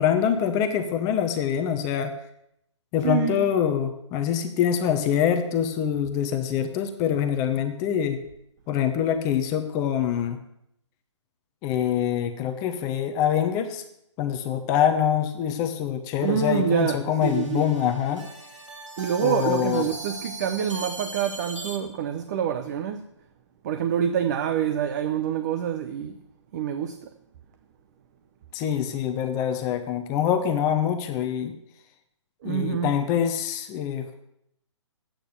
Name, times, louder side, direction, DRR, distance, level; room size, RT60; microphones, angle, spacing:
voice 1, 0.0-2.1 2.9-8.2 8.7-10.4 11.6-13.8 14.2-18.3 19.2-19.9 28.5-31.6 32.4-34.1, left 9 dB, 20° left, 0.9 m, -25 dB
voice 2, 3.0-3.5 16.2-17.7 19.0-23.1 23.6-26.2 26.5-27.1 32.4-33.0, right 9 dB, 35° right, 0.7 m, -26 dB
sound 1, 16.2-21.8, right 2 dB, 85° right, 2.2 m, -39 dB
11.5 x 8.9 x 6.8 m
figure-of-eight pair, 135°, 15 cm